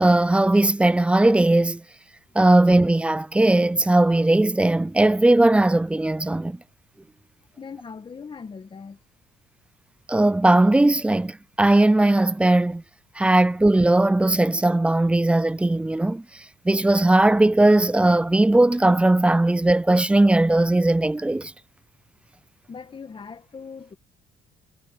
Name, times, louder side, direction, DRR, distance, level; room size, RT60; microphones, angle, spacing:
voice 1, 0.0-1.8 2.4-6.6 10.1-12.8 13.2-16.2 16.7-21.5, right 2 dB, 5° right, 0.4 m, -18 dB
voice 2, 7.5-9.0 22.7-24.0, left 5 dB, 30° left, 2.0 m, -40 dB
cardioid pair, 110°, 17 cm